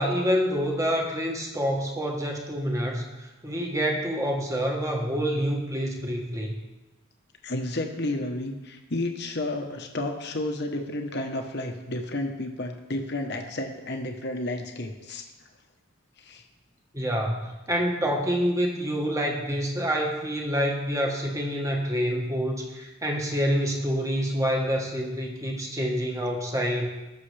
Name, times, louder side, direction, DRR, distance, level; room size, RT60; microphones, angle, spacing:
voice 1, 0.0-6.5 16.9-26.9, equal, 15° right, 1 dB, 1.3 m, -27 dB
voice 2, 7.4-15.2 16.2-16.4, left 1 dB, 50° left, 4 dB, 1.1 m, -31 dB
18.5 x 6.8 x 3.4 m, 1.1 s
head